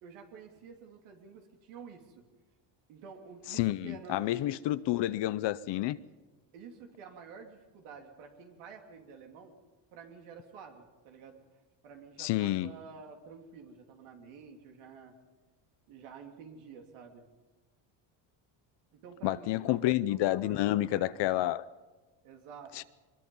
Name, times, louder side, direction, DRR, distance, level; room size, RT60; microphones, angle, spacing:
voice 1, 0.0-2.2 2.9-4.4 6.5-9.5 9.9-11.4 11.8-15.2 15.9-17.3 18.9-21.1 22.2-22.8, right 6 dB, 85° right, 3.0 m, -50 dB
voice 2, 3.5-6.0 12.2-12.7 19.2-21.6 22.8-22.9, left 15 dB, 60° left, 0.7 m, -29 dB
23.0 x 21.5 x 5.5 m
cardioid pair, 135°, 48 cm